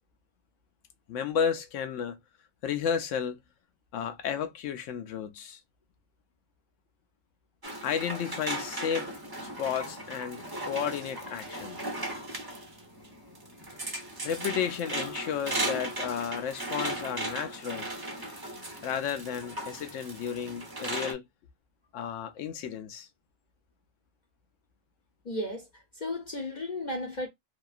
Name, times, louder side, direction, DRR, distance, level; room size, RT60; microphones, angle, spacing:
voice 1, 1.1-2.2 2.6-3.4 3.9-5.6 7.8-9.1 9.6-11.8 14.2-17.9 18.8-21.3 21.9-23.1, left 8 dB, 90° left, 1.0 m, -32 dB
sound 1, 7.6-21.1, right 1 dB, 25° right, 0.5 m, -37 dB
voice 2, 25.2-27.3, left 1 dB, 45° left, 0.6 m, -34 dB
2.8 x 2.3 x 2.3 m
omnidirectional pair, 1.2 m